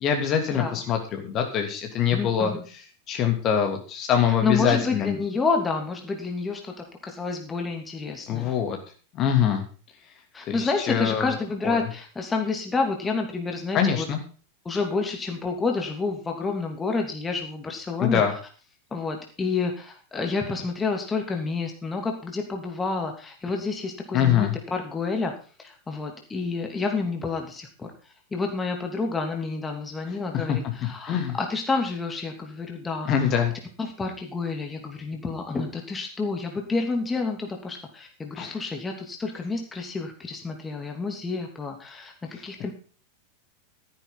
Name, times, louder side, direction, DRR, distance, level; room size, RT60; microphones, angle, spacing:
voice 1, 0.0-2.5 3.1-5.1 8.3-8.8 9.1-9.6 10.5-10.6 10.9-11.3 11.6-11.8 13.7-14.2 18.0-18.3 24.1-24.5 30.5-30.6 31.0-31.3 33.1-33.5 38.3-38.5, left 8 dB, 35° left, 4 dB, 2.9 m, -23 dB
voice 2, 2.1-2.6 4.4-8.5 10.3-14.1 14.6-18.2 18.9-25.3 25.6-33.4 33.8-42.7, left 4 dB, 15° left, 3 dB, 2.9 m, -29 dB
14.5 x 10.0 x 4.0 m, 0.38 s
figure-of-eight pair, 90°, 0 cm